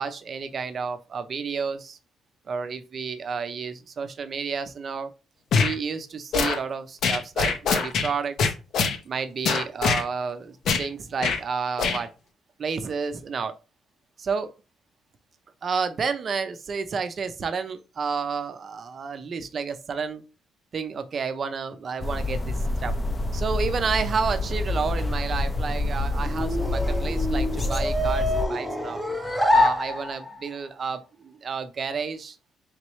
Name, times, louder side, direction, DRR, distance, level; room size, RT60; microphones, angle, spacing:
voice 1, 0.0-2.0 2.5-5.1 5.6-8.5 9.0-12.1 12.6-13.6 14.2-14.5 15.6-20.2 20.7-22.9 23.3-29.0 29.5-32.4, right 5 dB, 50° right, 0.5 m, -30 dB
sound 1, 5.5-5.7 6.3-6.6 7.0-8.1 8.4-9.0 9.4-10.0 10.7-10.9 11.2-11.4 11.8-12.0, left 5 dB, 70° left, 0.6 m, -23 dB
sound 2, 22.0-28.4, left 2 dB, 25° left, 0.5 m, -27 dB
sound 3, 25.6-30.5, left 1 dB, 5° left, 0.8 m, -26 dB
3.6 x 3.0 x 3.0 m
cardioid pair, 90°, 0 cm